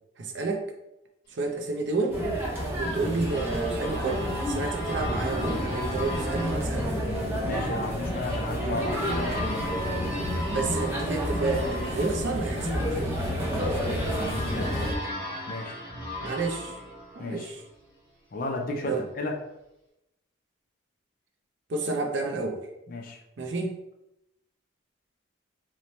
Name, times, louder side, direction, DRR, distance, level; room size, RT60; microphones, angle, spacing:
voice 1, 0.2-0.7 1.3-2.2 2.8-6.9 10.5-13.2 16.2-16.8 17.2-17.6 18.8-19.1 21.7-22.6 23.4-23.7, right 3 dB, 65° right, 3 dB, 0.5 m, -30 dB
sound 1, 2.1-14.9, equal, 10° right, 0.8 m, -30 dB
sound 2, 2.2-17.8, left 1 dB, 25° left, 1.2 m, -38 dB
voice 2, 7.3-9.7 14.1-15.8 17.2-17.5 18.3-19.4 22.9-23.2, left 2 dB, 45° left, 3 dB, 0.4 m, -34 dB
3.0 x 2.1 x 4.0 m, 0.90 s
head